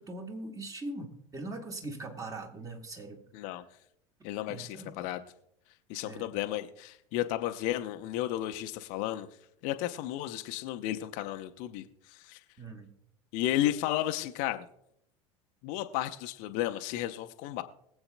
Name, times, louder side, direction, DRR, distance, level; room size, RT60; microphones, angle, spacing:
voice 1, 0.0-3.2 4.5-5.0 6.0-6.3 12.6-12.9, right 2 dB, 20° right, 4 dB, 1.6 m, -41 dB
voice 2, 3.3-3.6 4.2-5.2 5.9-9.3 9.6-12.4 13.3-14.7 15.6-17.6, left 13 dB, 45° left, 7 dB, 0.8 m, -33 dB
22.5 x 8.0 x 2.2 m, 0.76 s
figure-of-eight pair, 75°, 18 cm